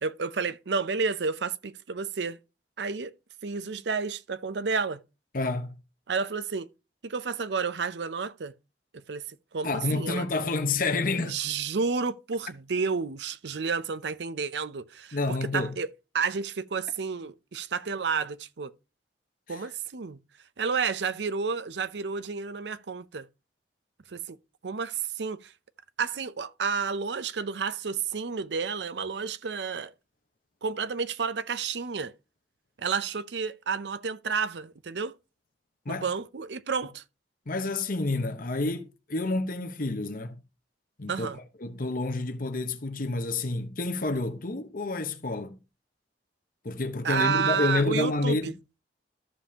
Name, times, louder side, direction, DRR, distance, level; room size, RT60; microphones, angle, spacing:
voice 1, 0.0-2.4 2.8-3.1 3.4-5.0 6.1-6.7 7.0-8.5 8.9-9.2 9.5-10.2 11.2-15.9 16.1-18.7 19.5-20.2 20.6-23.3 24.1-24.4 24.6-25.5 26.0-29.9 30.6-32.1 32.8-35.1 35.9-37.0 41.1-41.4 47.0-48.5, right 5 dB, 75° right, 0.6 m, -31 dB
voice 2, 5.3-5.8 9.6-11.4 15.1-15.7 19.5-19.6 35.8-36.0 37.5-40.4 41.0-41.3 41.6-45.6 46.6-48.5, left 3 dB, 50° left, 1.1 m, -29 dB
14.0 x 5.4 x 2.9 m
head